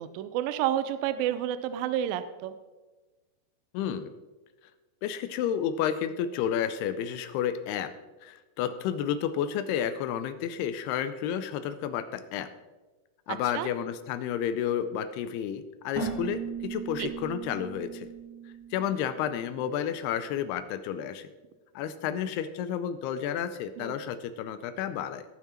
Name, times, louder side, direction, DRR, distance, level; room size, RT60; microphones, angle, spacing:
voice 1, 0.0-2.5 13.3-13.7 17.0-17.1 23.8-23.9, right 11 dB, 85° right, 12 dB, 2.0 m, -30 dB
voice 2, 3.7-4.1 5.0-7.9 8.2-12.5 13.3-18.1 18.7-21.3 21.8-25.3, left 9 dB, 85° left, 11 dB, 2.5 m, -31 dB
Keyboard (musical), 15.9-19.6, right 5 dB, 10° right, 1.3 m, -38 dB
18.0 x 6.0 x 4.4 m, 1.2 s
omnidirectional pair, 4.8 m